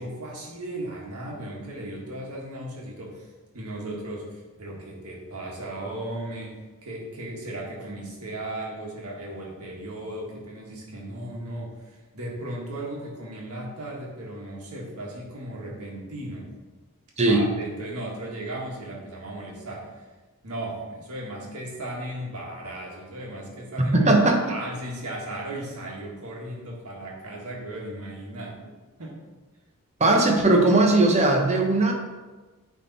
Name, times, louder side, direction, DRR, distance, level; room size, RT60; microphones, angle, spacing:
voice 1, 0.0-3.3 3.5-16.5 17.3-19.9 20.4-24.1 24.5-28.7 29.0-29.2, right 1 dB, 85° right, -2 dB, 1.7 m, -36 dB
voice 2, 17.2-17.5 23.9-24.6 30.0-31.9, right 2 dB, 30° right, 2 dB, 1.0 m, -19 dB
9.2 x 3.7 x 4.2 m, 1.3 s
head